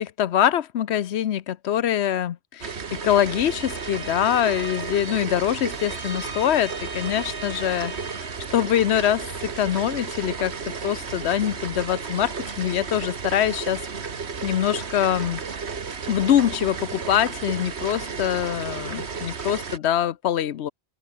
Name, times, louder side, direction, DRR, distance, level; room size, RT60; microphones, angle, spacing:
voice 1, 0.0-7.9 8.5-9.2 9.6-10.6 10.8-13.9 14.4-15.4 16.1-20.7, left 10 dB, 85° left, 1.0 m, -24 dB
Water Boiling, 2.6-19.8, right 5 dB, 85° right, 1.9 m, -33 dB
Bowed string instrument, 3.2-8.4, right 2 dB, 20° right, 1.8 m, -40 dB
open air
omnidirectional pair, 1.1 m